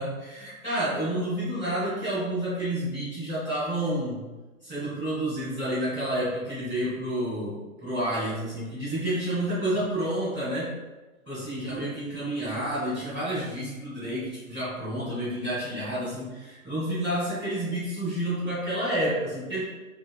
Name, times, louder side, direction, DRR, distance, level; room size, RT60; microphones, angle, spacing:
voice 1, 0.0-4.2 4.6-10.7 11.3-19.6, right 1 dB, 5° left, -17 dB, 0.7 m, -29 dB
2.5 x 2.2 x 2.3 m, 1.2 s
hypercardioid pair, 180°, 41 cm